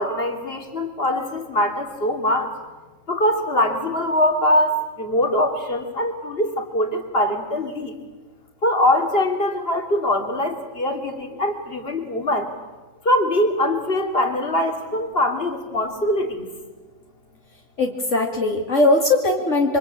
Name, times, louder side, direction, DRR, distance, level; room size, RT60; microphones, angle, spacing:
voice 1, 0.0-2.5 3.1-7.9 8.6-12.5 13.0-16.5, left 1 dB, 50° left, 5 dB, 3.1 m, -22 dB
voice 2, 17.8-19.8, left 2 dB, 70° left, 1 dB, 2.6 m, -19 dB
27.5 x 25.0 x 8.8 m, 1.2 s
omnidirectional pair, 1.3 m